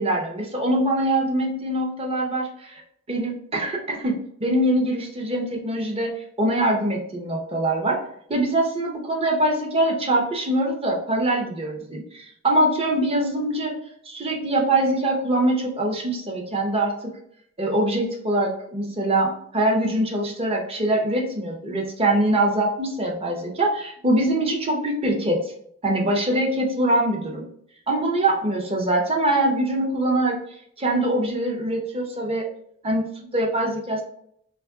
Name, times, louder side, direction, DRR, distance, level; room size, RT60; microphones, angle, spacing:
voice 1, 0.0-2.8 3.1-6.1 6.4-8.0 8.3-13.8 14.0-17.1 17.6-25.4 25.8-27.4 27.9-30.4 30.8-32.5 32.8-34.0, right 1 dB, 25° right, 0 dB, 0.6 m, -23 dB
3.0 x 2.4 x 3.5 m, 0.68 s
head